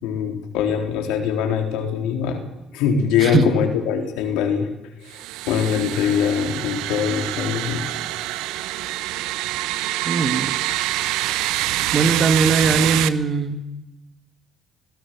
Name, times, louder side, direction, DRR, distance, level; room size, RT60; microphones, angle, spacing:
voice 1, 0.0-2.4 2.7-4.7 5.0-5.2 5.5-7.8, left 7 dB, 85° left, 4 dB, 3.9 m, -22 dB
voice 2, 3.2-3.5 10.0-10.6 11.9-13.7, right 4 dB, 50° right, 9 dB, 2.4 m, -20 dB
sound 1, 5.1-13.1, right 15 dB, 85° right, 0.9 m, -25 dB
25.0 x 16.0 x 7.8 m, 0.99 s
supercardioid pair, 65°, 0 cm